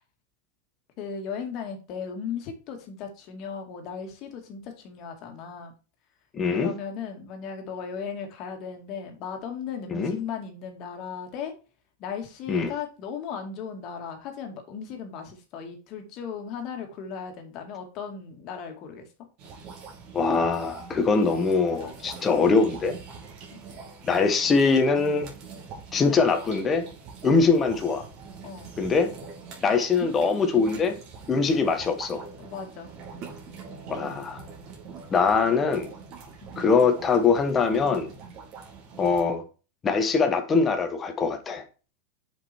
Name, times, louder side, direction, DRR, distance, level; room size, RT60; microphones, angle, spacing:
voice 1, 1.0-5.7 6.5-11.6 12.0-19.1 28.4-28.7 32.4-32.9 36.4-36.6, left 6 dB, 35° left, 2.1 m, -36 dB
voice 2, 6.3-6.7 9.9-10.2 12.5-12.7 20.1-23.0 24.0-25.3 25.9-26.9 27.2-28.0 28.8-29.1 29.6-31.0 31.3-32.2 33.9-34.4 35.1-35.9 36.6-38.1 39.0-39.4 39.8-41.6, left 4 dB, 15° left, 1.3 m, -22 dB
sound 1, 19.4-39.2, right 5 dB, 40° right, 2.8 m, -43 dB
7.3 x 5.3 x 4.4 m
supercardioid pair, 160°, 0 cm